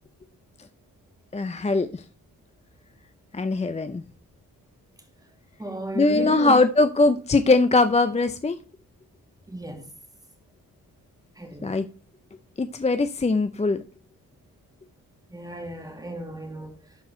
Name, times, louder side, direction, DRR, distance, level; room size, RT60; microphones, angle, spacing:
voice 1, 1.3-2.0 3.3-4.0 5.9-8.6 11.6-11.9 12.6-13.8, left 3 dB, 20° left, 0.5 m, -21 dB
voice 2, 5.6-6.6 9.5-9.9 11.4-11.7 15.3-16.8, right 1 dB, 10° right, 2.1 m, -34 dB
11.5 x 4.7 x 4.3 m
wide cardioid pair, 145°, 35 cm